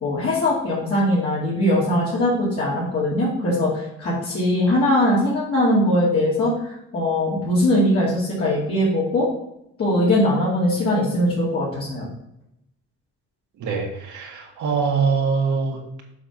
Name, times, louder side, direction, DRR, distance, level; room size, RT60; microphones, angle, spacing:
voice 1, 0.0-9.3 9.8-12.0, left 1 dB, 50° left, -8 dB, 2.6 m, -21 dB
voice 2, 13.6-16.0, right 5 dB, 75° right, 0 dB, 1.9 m, -23 dB
7.1 x 3.7 x 5.9 m, 0.81 s
cardioid pair, 90°, 30 cm